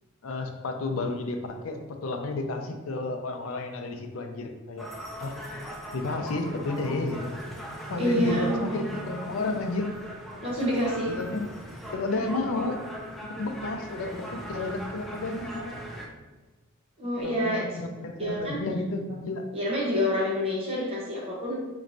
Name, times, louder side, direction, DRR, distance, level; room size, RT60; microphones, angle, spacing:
voice 1, 0.2-4.9 5.2-5.3 5.9-7.3 7.9-10.0 11.1-11.5 11.9-12.8 13.3-15.8 17.2-19.4, left 2 dB, 70° left, 5 dB, 0.5 m, -32 dB
sound 1, 4.8-16.1, equal, ahead, 0.4 m, -39 dB
voice 2, 8.0-8.9 10.4-11.1 17.0-17.6 18.2-18.6 19.5-21.5, equal, 30° right, -5 dB, 0.8 m, -27 dB
4.3 x 3.0 x 2.6 m, 1.2 s
head